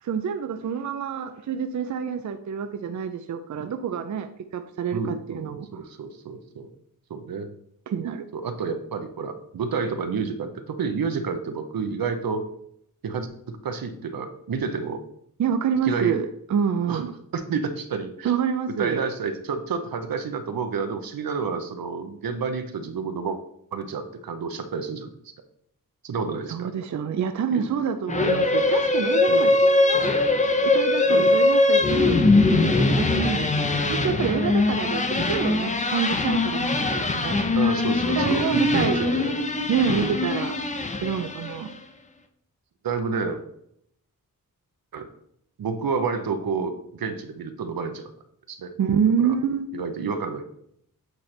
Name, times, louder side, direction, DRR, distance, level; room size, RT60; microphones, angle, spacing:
voice 1, 0.0-5.7 7.9-8.3 15.4-17.1 18.2-19.0 26.5-30.0 30.6-37.3 38.2-39.1 39.7-40.5 41.0-41.7 48.8-49.7, right 7 dB, 55° right, 8 dB, 0.4 m, -27 dB
voice 2, 4.9-6.7 7.1-7.5 8.3-12.4 13.0-15.0 15.8-16.2 16.9-17.0 17.3-18.3 18.8-23.4 23.7-25.1 26.0-26.7 27.5-27.7 29.3-29.6 31.1-31.3 37.6-39.3 39.9-40.1 42.8-43.4 44.9-45.1 45.6-48.1 48.5-48.7 49.2-49.3 49.7-50.5, right 5 dB, 85° right, 8 dB, 0.8 m, -30 dB
sound 1, 28.1-41.7, left 2 dB, 20° left, 0.5 m, -22 dB
8.1 x 3.2 x 4.4 m, 0.72 s
wide cardioid pair, 145°, 34 cm